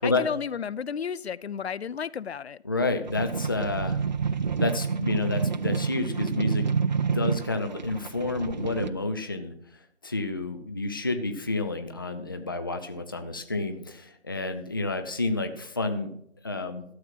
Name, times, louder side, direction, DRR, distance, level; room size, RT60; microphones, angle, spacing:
voice 1, 0.0-2.6, left 7 dB, 75° left, 20 dB, 0.5 m, -32 dB
voice 2, 2.6-4.0 4.6-6.7 7.1-16.1 16.4-16.8, left 3 dB, 20° left, 7 dB, 0.5 m, -30 dB
sound 1, 3.1-8.9, right 5 dB, 45° right, 0.4 m, -28 dB
12.5 x 7.3 x 5.6 m, 0.70 s
figure-of-eight pair, 160°, 32 cm